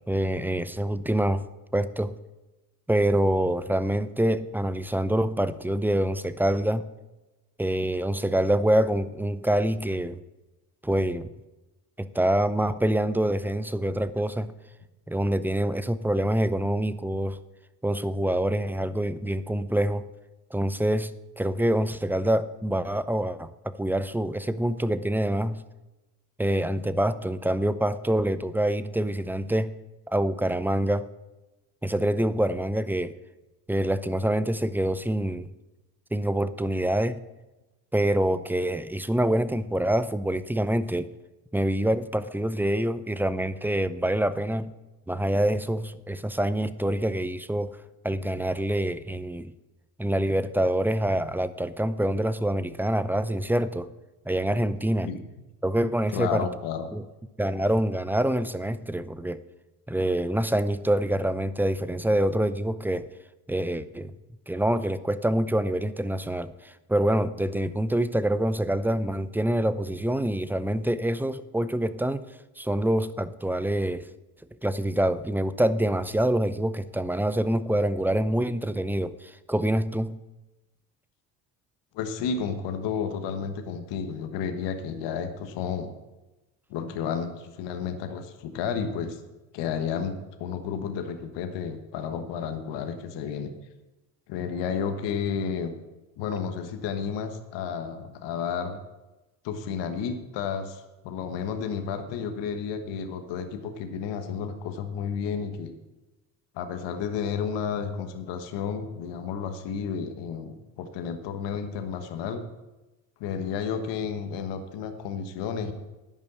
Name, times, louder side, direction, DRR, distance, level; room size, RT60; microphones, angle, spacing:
voice 1, 0.1-1.4 1.7-2.1 2.9-6.8 7.6-10.2 10.8-11.3 12.0-14.5 15.1-17.4 17.8-20.1 20.5-25.6 26.4-29.7 30.1-31.1 31.8-33.1 33.7-35.5 36.1-37.2 37.9-41.1 41.5-44.7 45.1-47.8 48.0-49.5 50.0-53.9 54.3-55.1 55.6-56.5 56.9-57.0 57.4-59.4 59.9-63.1 63.5-64.1 64.5-72.3 72.6-74.1 74.6-80.2, right 1 dB, 5° right, 14 dB, 0.5 m, -26 dB
voice 2, 56.1-56.9 81.9-85.9 86.7-89.2 89.5-93.5 94.3-95.7 96.2-98.8 99.4-105.7 106.5-112.5 113.2-115.7, left 6 dB, 65° left, 8 dB, 1.3 m, -32 dB
10.5 x 5.5 x 8.5 m, 1.1 s
hypercardioid pair, 65°, 45 cm